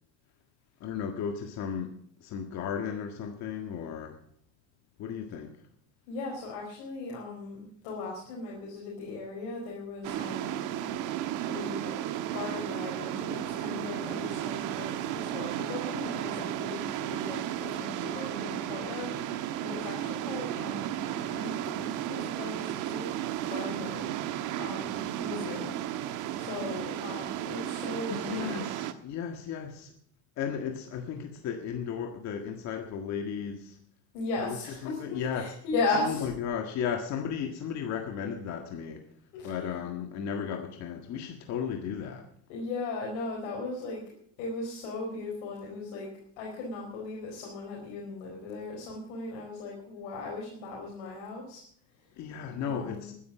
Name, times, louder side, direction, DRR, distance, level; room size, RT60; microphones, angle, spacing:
voice 1, 0.8-4.2 5.0-5.5 28.1-29.9 30.4-33.8 34.4-34.6 34.8-35.5 35.9-39.0 39.4-42.3 52.2-53.1, left 7 dB, 50° left, 4 dB, 1.7 m, -35 dB
voice 2, 6.1-10.6 11.5-12.0 12.3-23.1 23.5-24.1 24.6-26.1 26.4-28.7 34.1-36.3 39.3-39.7 41.6-41.7 42.5-44.0 44.4-46.1 46.4-51.6 51.9-52.1 52.6-53.1, left 3 dB, 80° left, -2 dB, 4.4 m, -37 dB
sound 1, 10.0-28.9, right 11 dB, 60° right, 1.3 m, -34 dB
13.0 x 10.5 x 7.3 m, 0.65 s
cardioid pair, 140°, 35 cm